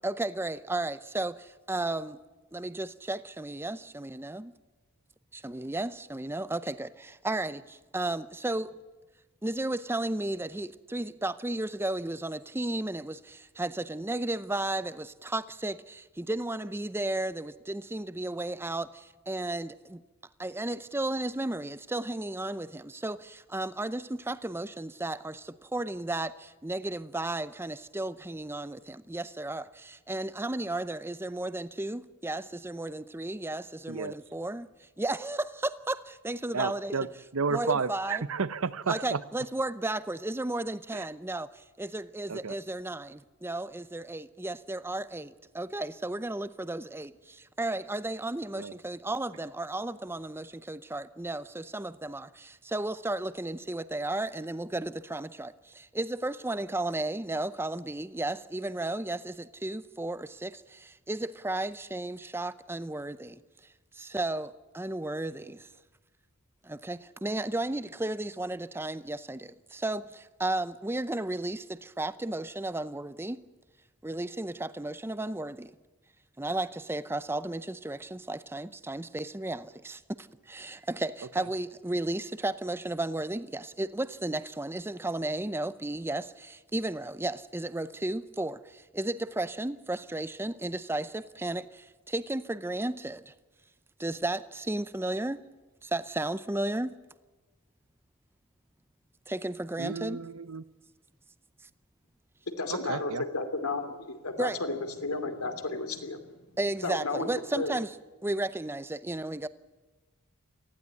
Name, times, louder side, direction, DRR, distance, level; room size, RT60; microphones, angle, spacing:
voice 1, 0.0-2.2 2.5-4.5 5.3-8.8 9.4-20.0 20.4-34.7 35.0-36.9 37.5-38.2 38.9-63.4 63.9-65.7 66.6-73.4 74.0-75.7 76.4-93.3 94.0-95.4 95.8-97.0 99.3-100.2 104.4-104.6 106.6-108.0 108.2-109.5, right 2 dB, 10° right, 14 dB, 0.6 m, -34 dB
voice 2, 36.5-37.1 37.3-39.2 42.3-42.6 48.5-48.7 81.4-81.5 99.8-100.6 102.7-103.3, right 5 dB, 70° right, 16 dB, 0.8 m, -32 dB
voice 3, 102.6-106.4 106.8-107.3 107.6-107.7, left 3 dB, 85° left, 7 dB, 2.6 m, -33 dB
19.0 x 15.0 x 9.6 m, 1.2 s
head